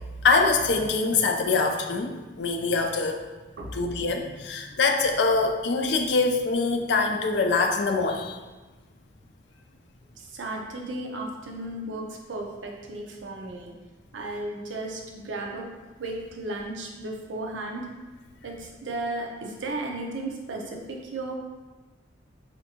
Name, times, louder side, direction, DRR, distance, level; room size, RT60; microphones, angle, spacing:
voice 1, 0.2-3.2 3.7-8.4, left 3 dB, 70° left, 4 dB, 0.4 m, -24 dB
voice 2, 3.6-3.9 10.2-13.7 14.1-15.6 16.0-17.9 18.4-21.4, right 2 dB, 90° right, 0 dB, 0.6 m, -34 dB
4.3 x 2.6 x 2.8 m, 1.2 s
head